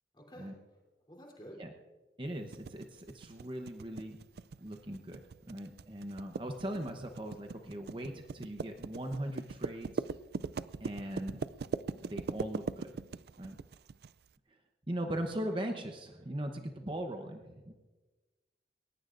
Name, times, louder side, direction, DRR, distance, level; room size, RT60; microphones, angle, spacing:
voice 1, 0.1-0.8 1.1-1.6, equal, 25° left, -1 dB, 3.2 m, -51 dB
voice 2, 2.2-4.2 4.6-10.0 10.8-11.4 12.0-12.9 13.4-13.6 14.9-17.7, right 1 dB, 30° right, 4 dB, 0.9 m, -39 dB
sound 1, 2.5-14.1, right 4 dB, 60° right, 0.4 m, -40 dB
21.0 x 19.0 x 2.6 m, 1.2 s
head